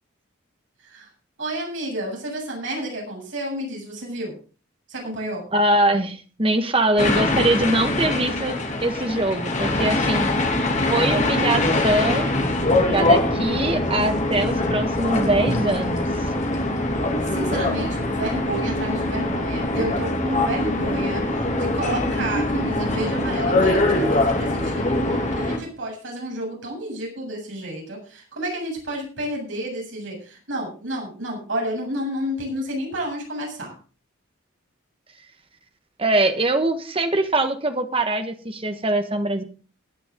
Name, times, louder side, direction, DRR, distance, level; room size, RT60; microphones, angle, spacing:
voice 1, 1.4-4.4 4.9-5.4 17.3-33.7, right 1 dB, 65° right, -1 dB, 7.7 m, -30 dB
voice 2, 5.5-10.3 10.9-12.3 12.9-16.1 36.0-39.4, right 1 dB, 25° right, 7 dB, 1.5 m, -22 dB
sound 1, 7.0-25.6, left 2 dB, 35° left, 2.7 m, -23 dB
18.5 x 10.5 x 3.8 m, 0.38 s
head